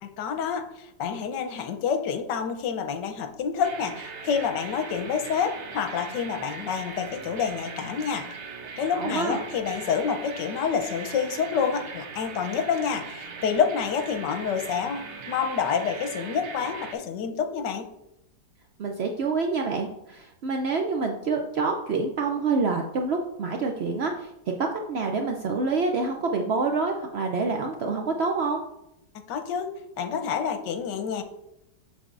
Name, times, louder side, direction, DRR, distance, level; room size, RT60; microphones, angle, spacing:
voice 1, 0.0-8.3 8.8-17.9 29.3-29.7 30.0-31.2, left 7 dB, 80° left, 7 dB, 1.4 m, -28 dB
sound 1, 3.6-16.9, right 5 dB, 55° right, 0.9 m, -40 dB
voice 2, 8.9-9.4 18.8-24.3 24.6-28.6, right 4 dB, 80° right, 3 dB, 0.5 m, -27 dB
7.6 x 6.7 x 2.5 m, 0.84 s
omnidirectional pair, 1.9 m